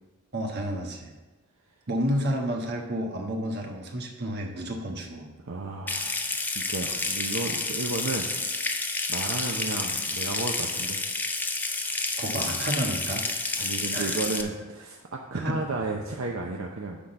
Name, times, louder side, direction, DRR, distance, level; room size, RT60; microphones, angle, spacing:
voice 1, 0.3-1.1 1.9-5.3 12.2-13.3 13.9-14.2 15.3-15.6, equal, 45° right, 1 dB, 1.2 m, -30 dB
voice 2, 5.4-8.3 9.1-11.0 13.6-17.0, right 3 dB, 65° right, 0 dB, 0.7 m, -33 dB
Water tap faucet / Sink (filling or washing) / Trickle dribble, 5.9-14.4, left 3 dB, 10° left, 0.4 m, -30 dB
10.0 x 3.8 x 6.5 m, 1.2 s
head